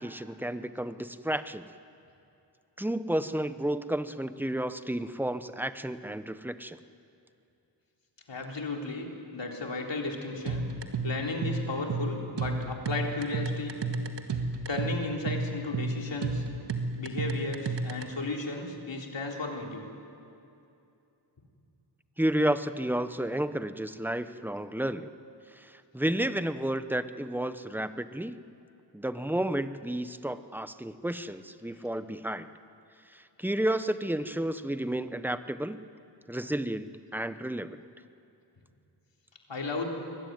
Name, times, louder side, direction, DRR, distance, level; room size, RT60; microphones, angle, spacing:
voice 1, 0.0-1.7 2.8-6.8 22.2-25.1 25.6-28.4 28.9-32.5 33.1-35.8 36.3-37.8, right 1 dB, 5° right, 11 dB, 0.8 m, -31 dB
voice 2, 8.3-10.6 11.0-13.8 14.7-16.4 17.0-19.9 39.5-39.9, left 3 dB, 85° left, 0 dB, 3.7 m, -34 dB
sound 1, 10.5-18.0, right 3 dB, 75° right, 1.8 m, -31 dB
24.0 x 21.0 x 9.5 m, 2.6 s
wide cardioid pair, 100°, 43 cm